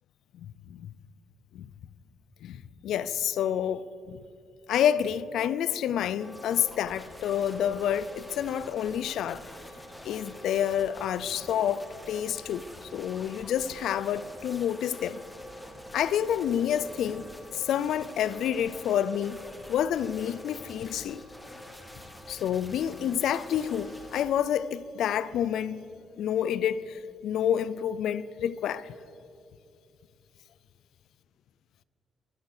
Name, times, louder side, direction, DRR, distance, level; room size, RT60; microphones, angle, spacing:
voice 1, 0.3-0.9 1.5-1.7 2.4-3.8 4.1-4.2 4.7-9.4 10.0-12.6 12.9-15.2 15.9-17.3 17.5-19.4 19.7-21.2 22.3-25.8 26.2-28.9, left 9 dB, 75° left, 0.5 m, -28 dB
sound 1, 6.2-24.3, left 1 dB, 10° left, 2.6 m, -46 dB
24.0 x 8.0 x 6.5 m
cardioid pair, 90°, 0 cm